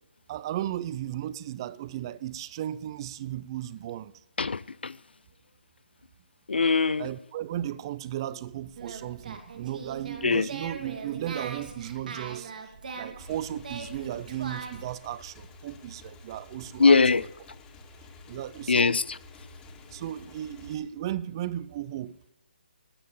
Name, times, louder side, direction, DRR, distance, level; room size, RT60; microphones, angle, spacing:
voice 1, 0.3-4.1 7.0-17.2 18.3-19.0 19.9-22.3, right 12 dB, 25° right, 0.4 m, -35 dB
voice 2, 4.4-5.0 6.5-7.1 10.2-10.5 16.8-17.2 18.7-19.2, left 4 dB, 85° left, 0.5 m, -22 dB
Singing, 8.7-14.9, right 5 dB, 55° right, 2.3 m, -40 dB
Motorcycle / Engine, 13.2-20.7, left 3 dB, 15° left, 1.9 m, -50 dB
17.5 x 7.3 x 7.1 m
hypercardioid pair, 155°, 6 cm